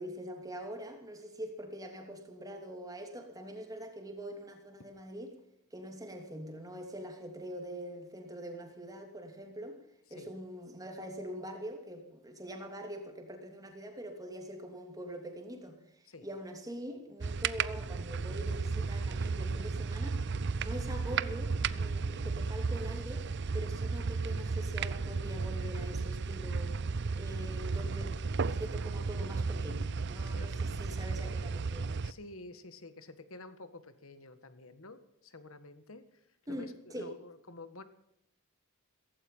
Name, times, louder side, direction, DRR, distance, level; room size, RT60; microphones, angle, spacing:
voice 1, 0.0-5.3 5.7-9.8 10.1-23.3 23.5-26.7 27.1-28.2 28.5-32.0 36.5-37.1, equal, 15° right, 4 dB, 2.8 m, -44 dB
sound 1, 17.2-32.1, right 4 dB, 50° right, 0.6 m, -34 dB
voice 2, 30.2-30.6 32.0-37.8, left 2 dB, 65° left, 11 dB, 1.7 m, -50 dB
16.5 x 15.5 x 5.6 m, 0.76 s
head